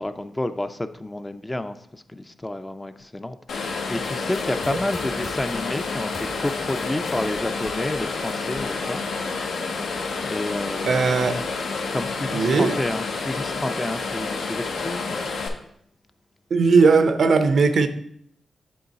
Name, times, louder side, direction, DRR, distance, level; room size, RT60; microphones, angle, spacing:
voice 1, 0.0-9.0 9.6-11.2 11.9-15.2, left 1 dB, 15° left, 0.4 m, -30 dB
sound 1, 3.5-15.5, left 4 dB, 80° left, 0.9 m, -29 dB
sound 2, 4.0-9.9, left 2 dB, 40° left, 0.9 m, -44 dB
voice 2, 10.9-11.4 12.3-12.8 16.5-17.9, right 4 dB, 70° right, 0.6 m, -18 dB
7.7 x 3.9 x 4.0 m
cardioid pair, 70°, 0 cm